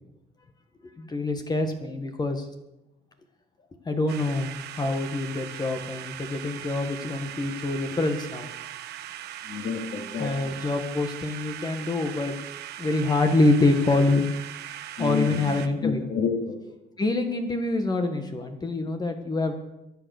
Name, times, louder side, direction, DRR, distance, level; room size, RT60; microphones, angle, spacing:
voice 1, 1.0-2.5 3.8-8.5 10.2-12.3 12.8-14.3 15.0-16.1 17.0-19.6, left 2 dB, 25° left, 5 dB, 1.6 m, -25 dB
sound 1, 4.1-15.7, right 11 dB, 75° right, 1.3 m, -39 dB
voice 2, 9.4-10.5 15.0-15.5 15.8-16.6, left 5 dB, 55° left, 0 dB, 2.9 m, -29 dB
23.0 x 8.0 x 6.6 m, 0.91 s
cardioid pair, 110°, 17 cm